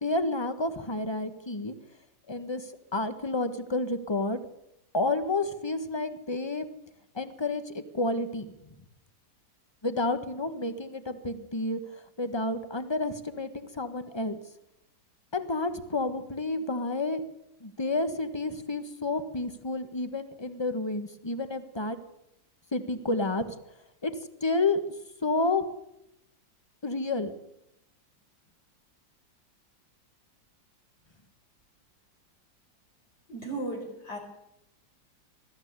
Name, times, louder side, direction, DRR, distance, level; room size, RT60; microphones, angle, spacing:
voice 1, 0.0-1.7 2.3-4.4 4.9-6.7 7.1-8.5 9.8-11.8 12.2-14.4 15.3-17.2 17.6-22.0 22.7-23.5 24.0-24.1 24.4-24.8 25.2-25.6 26.8-27.3, left 2 dB, 15° left, 10 dB, 1.3 m, -30 dB
voice 2, 33.3-34.2, right 2 dB, 60° left, -2 dB, 5.6 m, -35 dB
21.5 x 14.0 x 9.6 m, 0.85 s
omnidirectional pair, 2.1 m